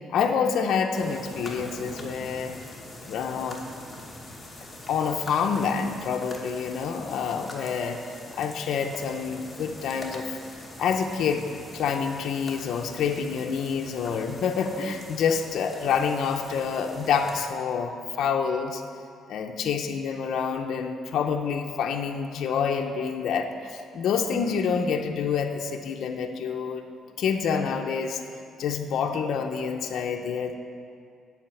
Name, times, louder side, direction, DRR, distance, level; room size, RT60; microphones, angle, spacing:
voice 1, 0.1-2.6 3.0-3.6 3.9-4.0 4.9-10.4 10.8-18.8 19.3-26.8 27.2-28.2 28.6-30.5, left 6 dB, 60° left, 3 dB, 0.6 m, -27 dB
sound 1, 0.9-17.4, left 1 dB, 10° left, 1.2 m, -43 dB
10.5 x 4.9 x 7.0 m, 2.4 s
cardioid pair, 160°, 0 cm